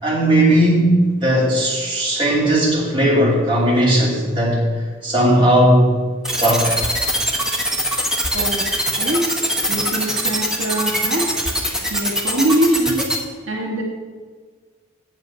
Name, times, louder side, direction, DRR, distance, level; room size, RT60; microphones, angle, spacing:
voice 1, 0.0-4.6 5.0-6.0 6.4-6.7, right 1 dB, 25° right, -6 dB, 2.8 m, -16 dB
sound 1, 6.2-13.2, equal, 5° right, 0.9 m, -21 dB
voice 2, 8.3-8.6 9.0-9.2 9.7-11.3 11.9-13.0 13.5-13.8, right 1 dB, 70° right, -2 dB, 1.3 m, -22 dB
8.2 x 7.3 x 5.4 m, 1.5 s
head